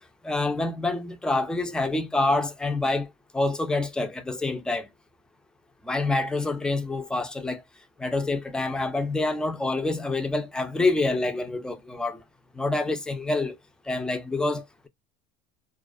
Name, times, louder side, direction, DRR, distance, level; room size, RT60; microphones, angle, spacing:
voice 1, 0.2-3.1 3.3-4.9 5.9-7.6 8.0-12.2 12.6-13.5 13.9-14.9, left 2 dB, 5° left, 0.4 m, -27 dB
2.4 x 2.2 x 2.4 m
supercardioid pair, 125°, 19 cm